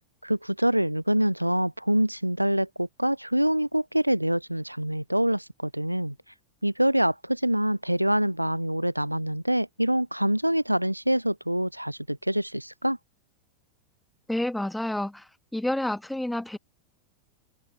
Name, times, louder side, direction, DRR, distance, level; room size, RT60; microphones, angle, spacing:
voice 1, 0.2-6.1 6.6-13.0, right 1 dB, 90° right, 0.4 m, -25 dB
voice 2, 14.3-16.6, left 1 dB, 5° left, 1.5 m, -29 dB
open air
figure-of-eight pair, 90°, 0 cm